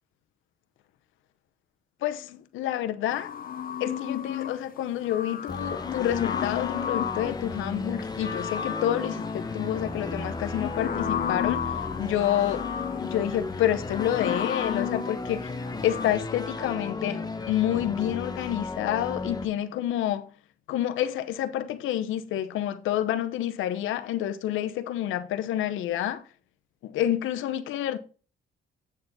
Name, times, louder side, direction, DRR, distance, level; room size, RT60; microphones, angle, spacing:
voice 1, 2.0-3.3 3.8-12.7 13.0-15.5 15.8-20.3 20.7-26.2 26.8-28.0, left 11 dB, 85° left, 0.8 m, -28 dB
sound 1, 3.1-4.6 5.0-7.4 7.9-16.1, left 9 dB, 45° left, 0.7 m, -33 dB
sound 2, 5.5-19.5, left 3 dB, 20° left, 1.0 m, -35 dB
8.2 x 6.8 x 4.1 m
cardioid pair, 90°, 20 cm